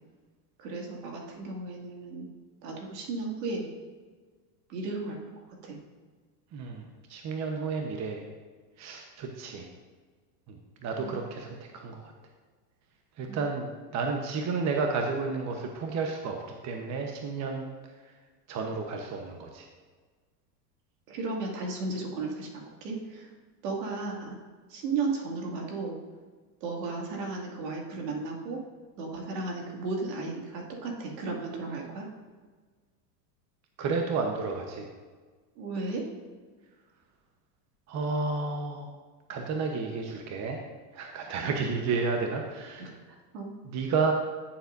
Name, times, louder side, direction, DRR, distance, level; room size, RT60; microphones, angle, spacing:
voice 1, 0.6-2.3 2.6-3.7 4.7-5.2 5.6-5.8 11.0-11.2 13.3-13.4 21.1-22.5 22.8-23.3 23.6-24.4 24.7-25.9 26.6-28.6 29.0-32.1 35.6-36.0 41.4-41.6 42.8-42.9 43.3-43.5, right 3 dB, 70° right, 0 dB, 2.4 m, -34 dB
voice 2, 6.5-6.8 7.1-8.3 8.8-9.7 10.5-12.1 13.2-16.4 16.6-17.6 18.5-19.7 33.8-34.9 37.9-38.9 39.3-40.6 40.9-42.9 43.6-44.1, right 4 dB, 35° right, 2 dB, 1.0 m, -31 dB
14.0 x 7.2 x 2.6 m, 1.5 s
supercardioid pair, 115°, 49 cm